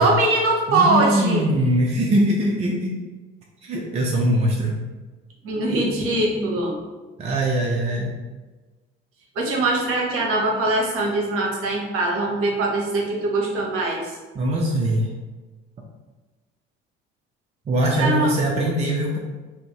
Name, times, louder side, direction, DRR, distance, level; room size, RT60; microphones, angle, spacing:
voice 1, 0.0-1.5 5.4-6.7 9.3-14.1 17.8-18.3, right 2 dB, 45° right, -1 dB, 0.8 m, -22 dB
voice 2, 0.7-2.9 3.6-4.8 7.2-8.1 14.3-15.1 17.7-19.2, right 1 dB, 20° right, -1 dB, 0.4 m, -22 dB
2.5 x 2.0 x 3.7 m, 1.3 s
figure-of-eight pair, 55°, 31 cm